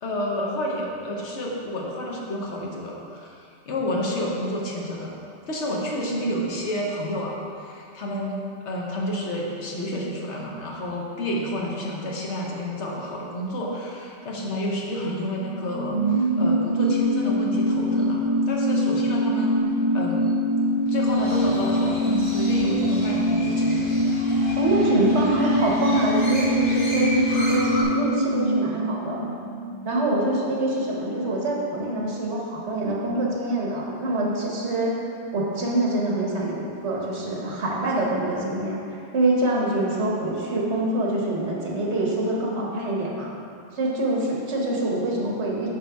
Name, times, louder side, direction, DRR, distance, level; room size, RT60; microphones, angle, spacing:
voice 1, 0.0-5.2 5.5-20.3 20.9-24.0, equal, 75° left, -2 dB, 1.3 m, -29 dB
sound 1, 15.4-30.4 30.7-30.8, equal, 30° right, 0.7 m, -24 dB
Crow, 21.1-27.8, equal, 45° left, 1.4 m, -34 dB
voice 2, 24.6-29.3 29.8-34.9 35.3-38.8 39.1-43.3 43.7-45.7, right 1 dB, 70° right, -3 dB, 1.4 m, -25 dB
6.8 x 5.9 x 3.4 m, 2.4 s
omnidirectional pair, 1.2 m